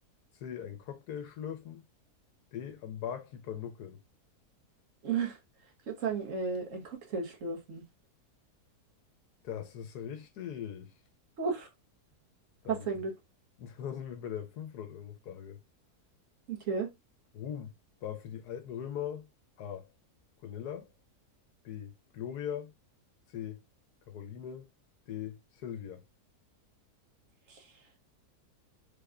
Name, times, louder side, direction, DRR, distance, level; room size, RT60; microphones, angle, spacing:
voice 1, 0.3-1.8 2.5-4.0 9.4-10.9 12.6-12.9 13.6-15.6 17.3-17.7 18.0-19.3 19.6-19.9 20.4-20.9 21.6-22.7 23.3-23.6 24.1-24.7 25.1-26.0, left 9 dB, 80° left, 1.2 m, -40 dB
voice 2, 5.0-5.4 5.9-7.8 11.4-11.7 12.7-13.1 16.5-16.9 27.5-27.6, right 5 dB, 60° right, 1.1 m, -33 dB
3.5 x 2.2 x 3.5 m
omnidirectional pair, 1.7 m